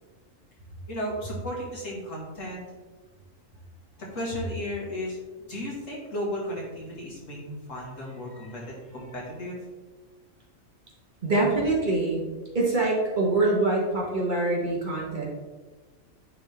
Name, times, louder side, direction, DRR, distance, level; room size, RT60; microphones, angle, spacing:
voice 1, 0.9-2.6 4.0-5.2 5.5-9.6, left 1 dB, 75° left, -4 dB, 2.4 m, -34 dB
voice 2, 11.2-12.2 12.5-15.2, right 2 dB, 40° right, -3 dB, 1.5 m, -24 dB
9.9 x 3.8 x 3.5 m, 1.3 s
omnidirectional pair, 1.4 m